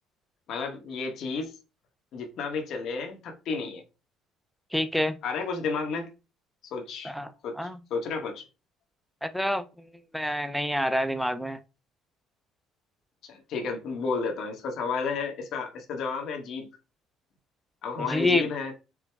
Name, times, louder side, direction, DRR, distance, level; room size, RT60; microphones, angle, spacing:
voice 1, 0.5-1.5 2.1-3.8 5.2-6.1 6.7-7.1 7.4-8.4 13.2-16.7 17.8-18.7, left 4 dB, 60° left, 1.1 m, -32 dB
voice 2, 4.7-5.2 7.0-7.3 7.6-7.8 9.2-9.6 10.1-11.6 18.0-18.4, left 1 dB, ahead, 0.5 m, -27 dB
4.7 x 2.2 x 3.4 m
cardioid pair, 115°, 0 cm